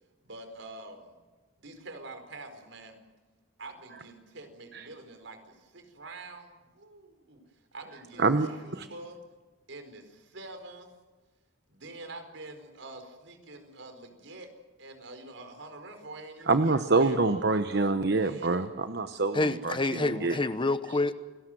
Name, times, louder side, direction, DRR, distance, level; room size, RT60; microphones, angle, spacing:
voice 1, 0.2-1.1 1.6-3.0 3.6-7.4 7.7-9.2 9.7-10.9 11.7-14.5 14.8-17.2 17.5-18.7, right 2 dB, 85° right, 7 dB, 4.6 m, -46 dB
voice 2, 8.2-8.9 16.5-20.4, right 3 dB, 60° right, 9 dB, 1.0 m, -26 dB
voice 3, 19.3-21.1, left 2 dB, 25° left, 13 dB, 0.9 m, -28 dB
29.0 x 19.5 x 7.8 m, 1.3 s
head